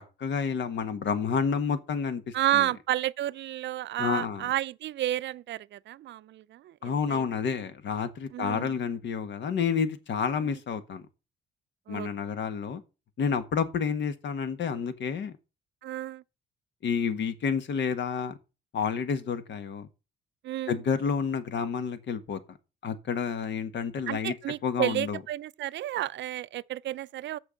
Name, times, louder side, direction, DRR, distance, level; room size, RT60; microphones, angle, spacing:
voice 1, 0.0-2.7 4.0-4.4 6.8-11.0 11.9-12.8 13.2-15.4 16.8-18.4 18.7-19.9 20.7-22.4 22.8-24.3 24.6-25.2, left 6 dB, 65° left, 1.5 m, -29 dB
voice 2, 2.3-7.2 8.3-8.7 10.4-10.6 11.9-12.1 15.8-16.2 20.4-20.8 24.1-27.4, right 13 dB, 65° right, 0.4 m, -31 dB
6.9 x 6.4 x 7.6 m
cardioid pair, 90°, 20 cm